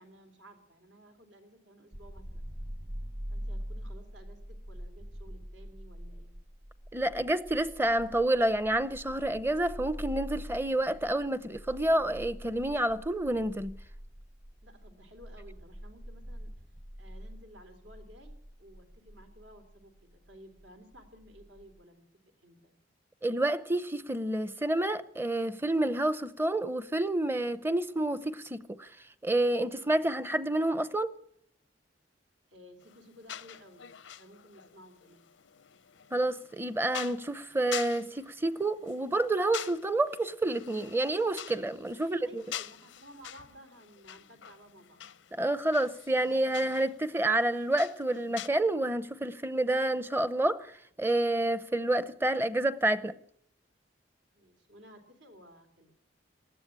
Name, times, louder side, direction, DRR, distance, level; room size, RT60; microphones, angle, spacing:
voice 1, 0.0-2.5 3.3-6.4 14.6-16.5 17.0-22.0 22.4-22.7 32.5-35.3 42.0-45.0 54.3-56.0, equal, 75° right, 3.4 m, -55 dB
sound 1, 1.9-21.8, equal, 30° right, 1.3 m, -44 dB
voice 2, 6.9-13.8 23.2-28.9 29.2-31.1 36.1-42.4 45.3-53.1, right 1 dB, 10° right, 0.7 m, -29 dB
sound 2, 32.8-48.5, left 10 dB, 90° left, 0.7 m, -46 dB
19.5 x 14.0 x 9.9 m
head